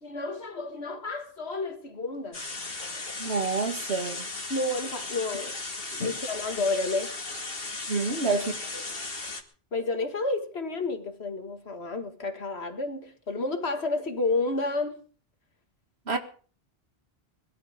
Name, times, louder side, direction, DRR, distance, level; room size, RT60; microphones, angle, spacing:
voice 1, 0.0-2.4 4.5-5.5 5.9-7.1 7.9-8.1 9.7-15.0, left 3 dB, 80° left, 2.2 m, -30 dB
sound 1, 2.3-9.4, left 3 dB, 65° left, 2.3 m, -36 dB
voice 2, 3.2-4.3 7.9-8.8 16.1-16.2, right 4 dB, 80° right, 2.3 m, -28 dB
21.5 x 12.5 x 5.2 m
omnidirectional pair, 1.1 m